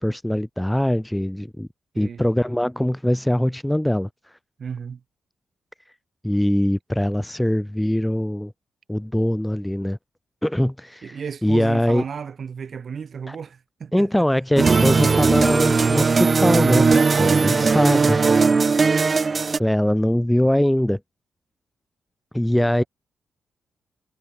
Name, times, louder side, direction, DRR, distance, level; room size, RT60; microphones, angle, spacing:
voice 1, 0.0-1.7 2.0-4.1 6.2-8.5 8.9-10.0 10.4-11.2 11.4-12.0 13.3-13.4 13.9-16.9 17.2-18.2 19.6-21.0 22.3-22.8, left 1 dB, 5° left, 2.5 m, -22 dB
voice 2, 4.6-5.0 11.0-14.3 14.6-14.8 17.1-18.8 22.5-22.9, right 6 dB, 50° right, 7.9 m, -33 dB
sound 1, 14.6-19.6, right 4 dB, 35° right, 1.0 m, -18 dB
cardioid pair, 95°, 0 cm